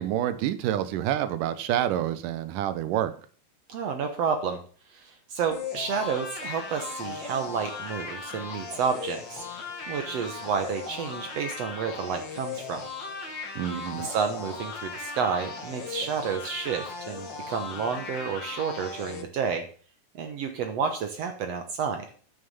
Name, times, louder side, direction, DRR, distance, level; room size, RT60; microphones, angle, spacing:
voice 1, 0.0-3.1 13.6-14.1, right 11 dB, 90° right, 12 dB, 2.4 m, -28 dB
voice 2, 3.7-4.6 4.9-9.5 9.9-12.8 14.0-19.6 20.2-22.1, right 6 dB, 65° right, 6 dB, 1.9 m, -30 dB
sound 1, 5.5-19.2, left 4 dB, 40° left, 2.0 m, -38 dB
9.3 x 6.7 x 7.0 m, 0.43 s
omnidirectional pair, 3.7 m